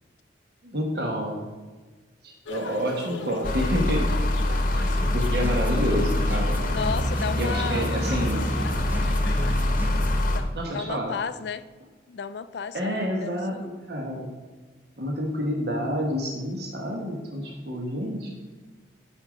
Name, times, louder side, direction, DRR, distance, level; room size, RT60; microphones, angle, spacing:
voice 1, 0.6-1.4 2.2-4.2 4.6-6.6 7.3-8.5 10.5-11.1 12.7-13.5 13.9-14.3 15.0-18.3, equal, 55° right, 0 dB, 1.2 m, -29 dB
sound 1, 2.4-9.7, left 3 dB, 85° left, 0.7 m, -41 dB
sound 2, 3.4-10.4, left 1 dB, 45° left, 0.9 m, -25 dB
sound 3, 5.0-10.2, right 1 dB, 10° right, 0.7 m, -35 dB
voice 2, 6.6-7.9 10.3-11.6 12.1-13.7, left 6 dB, 60° left, 13 dB, 0.4 m, -33 dB
8.3 x 5.3 x 5.0 m, 1.3 s
head